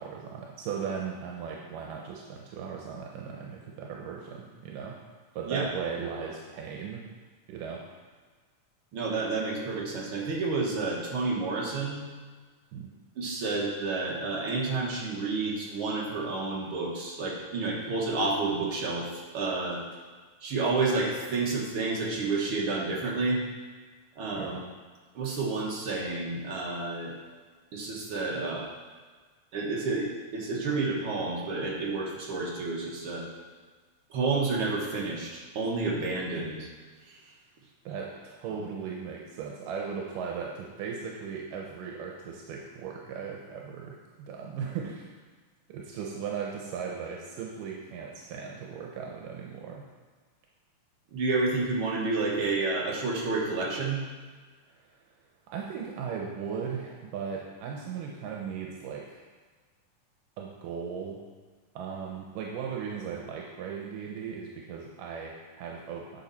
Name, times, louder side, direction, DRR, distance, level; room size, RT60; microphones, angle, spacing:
voice 1, 0.0-5.0 5.4-7.1 7.5-7.9 12.7-12.9 24.3-24.6 37.9-45.1 45.7-49.8 55.5-59.2 60.4-61.2 61.8-66.2, right 6 dB, 85° right, -1 dB, 2.4 m, -37 dB
voice 2, 8.9-12.0 13.2-19.1 19.3-19.8 20.4-23.4 24.2-24.6 25.1-27.1 27.7-28.7 29.5-33.2 34.1-35.3 35.5-36.7 51.1-54.0, right 3 dB, 55° right, -3 dB, 1.7 m, -30 dB
9.2 x 5.7 x 4.1 m, 1.4 s
omnidirectional pair, 3.8 m